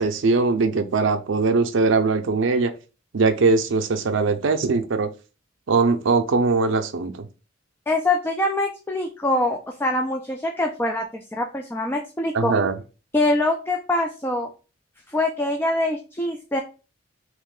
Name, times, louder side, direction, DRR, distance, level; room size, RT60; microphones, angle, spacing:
voice 1, 0.0-2.7 3.1-5.1 5.7-7.3 12.3-12.7, right 4 dB, 70° right, 0.5 m, -21 dB
voice 2, 7.9-12.5 13.1-14.5 15.1-16.6, left 2 dB, 10° left, 0.3 m, -24 dB
3.2 x 3.1 x 3.6 m
head